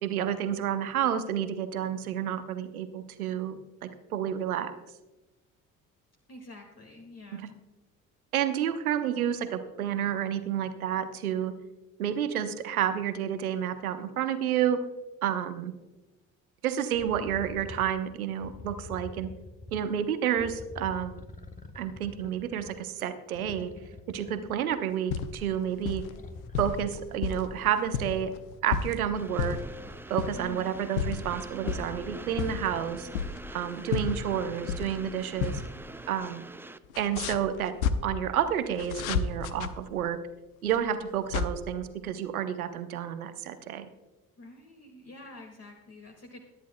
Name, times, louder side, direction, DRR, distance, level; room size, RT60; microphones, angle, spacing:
voice 1, 0.0-4.7 7.3-7.4 8.3-11.5 12.0-14.8 15.2-15.7 16.6-19.3 19.7-21.2 21.7-23.7 24.1-26.0 26.6-28.3 28.6-29.6 30.1-33.1 33.5-35.6 36.1-36.5 37.0-37.7 38.0-40.2 40.6-43.9, right 9 dB, 80° right, 11 dB, 0.9 m, -30 dB
voice 2, 6.3-7.5 30.3-30.7 44.4-46.4, left 2 dB, 35° left, 2 dB, 2.0 m, -47 dB
sound 1, 16.9-17.9 18.4-19.9 20.4-22.9 23.3-24.9 26.1-30.6 31.5-33.5 34.4-34.5, left 3 dB, 20° left, 1.2 m, -47 dB
sound 2, 24.9-25.5 25.8-26.1 26.5-27.5 27.8-29.0 29.4-29.8 30.2-30.5 30.8-31.3 31.7-31.9 32.3-33.6 33.9-35.1 35.4-35.7 35.9-36.0 36.9-37.9 38.8-39.7 40.7-41.5, left 7 dB, 75° left, 0.8 m, -31 dB
Train, 29.1-36.8, right 2 dB, 5° right, 0.6 m, -44 dB
23.0 x 10.5 x 2.2 m, 1.1 s
figure-of-eight pair, 50°, 42 cm